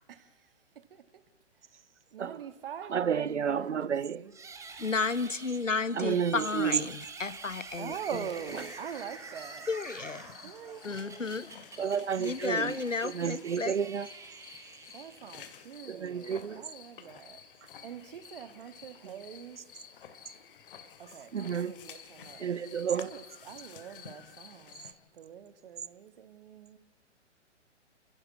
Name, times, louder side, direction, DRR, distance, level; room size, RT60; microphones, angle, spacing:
voice 1, 0.1-1.1 1.6-1.8 2.1-4.4 7.8-9.7 10.4-11.5 12.8-13.0 13.4-13.5 14.9-17.4 17.8-19.6 21.0-22.4 22.9-26.8, right 8 dB, 50° right, 2.2 m, -44 dB
voice 2, 2.9-4.2 5.9-6.9 11.8-12.8 13.0-14.1 15.9-16.6 21.3-21.7 22.4-23.1, right 7 dB, 70° right, 0.7 m, -31 dB
sound 1, 4.3-15.6, right 4 dB, 10° right, 1.9 m, -47 dB
voice 3, 4.8-7.9 9.7-10.2 10.8-11.5 12.2-13.7, left 4 dB, 90° left, 1.1 m, -32 dB
sound 2, 7.9-24.9, left 7 dB, 45° left, 2.7 m, -51 dB
28.5 x 16.0 x 7.6 m
figure-of-eight pair, 125°, 37 cm